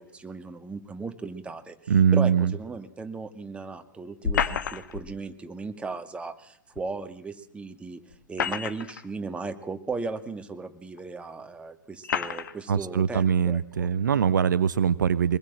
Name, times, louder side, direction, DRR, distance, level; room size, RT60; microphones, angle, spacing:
voice 1, 0.0-8.0 8.3-13.9, right 4 dB, 10° right, 7 dB, 2.0 m, -37 dB
voice 2, 1.9-2.5 12.7-15.4, right 7 dB, 65° right, 15 dB, 0.9 m, -22 dB
sound 1, 4.2-5.1 6.8-6.9 8.1-9.0 9.9-10.0 11.0-11.1 12.0-12.5, left 7 dB, 65° left, 1.7 m, -29 dB
24.0 x 20.5 x 7.4 m, 0.66 s
figure-of-eight pair, 100°, 11 cm